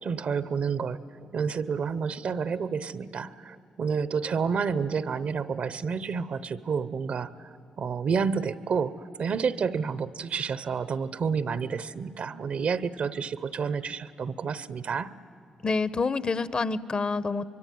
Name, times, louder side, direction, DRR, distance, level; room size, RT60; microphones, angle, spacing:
voice 1, 0.0-7.3 7.8-15.1, right 5 dB, 60° right, 16 dB, 0.9 m, -29 dB
voice 2, 15.6-17.4, left 4 dB, 45° left, 16 dB, 1.0 m, -27 dB
24.0 x 23.5 x 9.3 m, 2.8 s
supercardioid pair, 55°, 2 cm